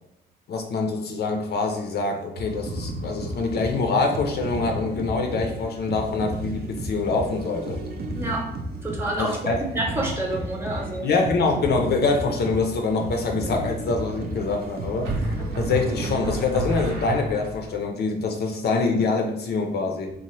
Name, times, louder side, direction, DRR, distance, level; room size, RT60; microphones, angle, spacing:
voice 1, 0.5-7.8 9.2-9.6 11.0-20.1, left 3 dB, 55° left, 4 dB, 0.4 m, -25 dB
sound 1, 2.4-16.5, right 1 dB, 50° right, 0.5 m, -33 dB
voice 2, 8.1-8.5 8.8-11.1, right 1 dB, 10° right, -1 dB, 0.7 m, -28 dB
sound 2, 12.4-12.9 15.1-17.7, right 2 dB, 90° right, 0.8 m, -30 dB
2.9 x 2.0 x 3.0 m, 0.85 s
cardioid pair, 90°, 20 cm